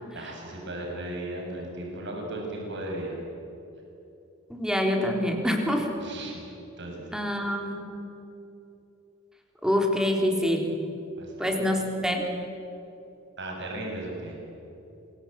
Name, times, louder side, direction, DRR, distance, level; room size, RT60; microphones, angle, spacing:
voice 1, 0.1-3.2 6.0-6.4 6.8-7.4 11.2-11.5 13.4-14.4, right 1 dB, 60° right, 0 dB, 7.1 m, -36 dB
voice 2, 4.5-5.9 7.1-7.9 9.6-10.7 11.4-12.2, equal, 5° right, 2 dB, 3.8 m, -26 dB
27.0 x 23.0 x 9.1 m, 2.9 s
head